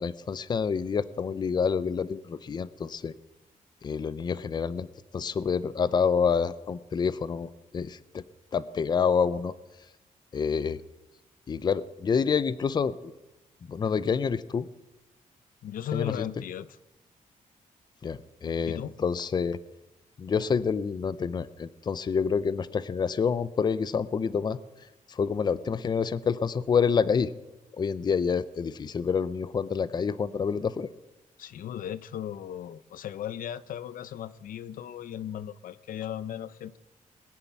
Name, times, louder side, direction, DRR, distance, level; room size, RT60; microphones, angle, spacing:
voice 1, 0.0-3.1 3.8-4.9 5.1-8.2 8.5-9.5 10.3-10.8 11.5-13.1 13.7-14.7 15.9-16.1 18.0-19.6 20.2-24.6 25.1-27.3 27.8-30.9, left 6 dB, 30° left, 0.5 m, -27 dB
voice 2, 15.6-16.8 18.7-18.9 31.4-36.8, left 10 dB, 85° left, 0.6 m, -36 dB
20.5 x 7.2 x 9.3 m
wide cardioid pair, 165°, 14 cm